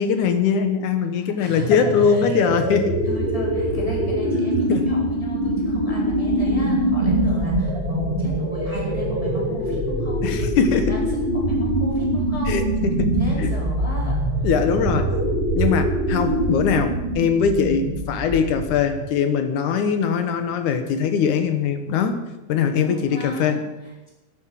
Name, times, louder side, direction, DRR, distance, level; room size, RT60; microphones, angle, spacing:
voice 1, 0.0-2.9 4.7-4.9 10.2-10.9 12.5-13.1 13.4-13.5 14.4-15.1 15.6-22.2 22.5-23.6, left 6 dB, 85° left, 8 dB, 2.7 m, -21 dB
voice 2, 1.1-2.2 3.0-12.7 13.2-14.2 14.8-15.2 22.8-24.1, equal, 10° left, -4 dB, 4.5 m, -35 dB
sound 1, 1.5-19.0, right 1 dB, 20° right, 2.6 m, -23 dB
12.0 x 10.5 x 7.4 m, 1.1 s
omnidirectional pair, 3.4 m